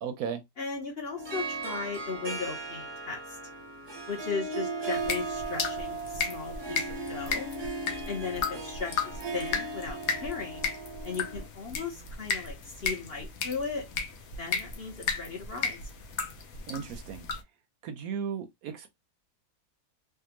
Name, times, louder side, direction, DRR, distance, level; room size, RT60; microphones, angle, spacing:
voice 1, 0.0-0.4 16.7-17.3 17.8-19.0, right 7 dB, 70° right, 1.0 m, -35 dB
voice 2, 0.6-3.2 4.1-7.5 8.1-10.7 11.0-13.8 14.4-15.8, left 5 dB, 45° left, 1.0 m, -37 dB
Harp, 1.2-11.5, right 3 dB, 25° right, 0.6 m, -37 dB
sound 1, 4.9-17.4, left 5 dB, 65° left, 1.1 m, -35 dB
3.5 x 2.3 x 2.9 m
omnidirectional pair, 1.7 m